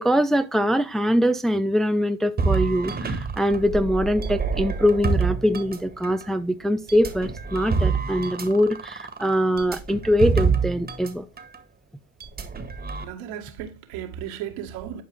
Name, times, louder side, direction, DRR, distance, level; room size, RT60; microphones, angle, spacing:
voice 1, 0.0-11.2, equal, ahead, 0.6 m, -23 dB
sound 1, 2.4-6.2 6.9-11.1 11.4-11.6 12.2-13.0, right 5 dB, 25° right, 1.7 m, -27 dB
voice 2, 13.0-15.0, right 10 dB, 70° right, 1.8 m, -35 dB
11.0 x 4.7 x 3.4 m
supercardioid pair, 90°, 37 cm